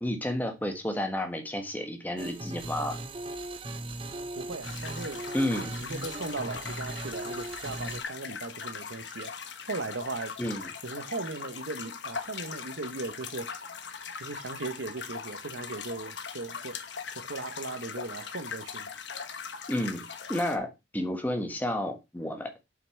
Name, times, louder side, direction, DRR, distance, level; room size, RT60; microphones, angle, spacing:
voice 1, 0.0-3.0 5.3-5.7 10.4-10.7 19.7-20.0 20.3-22.6, left 1 dB, 10° left, 1.4 m, -31 dB
sound 1, 2.2-8.0, right 2 dB, 30° right, 0.7 m, -38 dB
voice 2, 4.3-9.3 9.7-10.3 10.8-13.5 14.2-16.8 17.1-18.9, right 3 dB, 80° right, 1.0 m, -38 dB
sound 2, 4.6-20.6, left 6 dB, 70° left, 1.2 m, -40 dB
7.7 x 5.8 x 4.5 m
head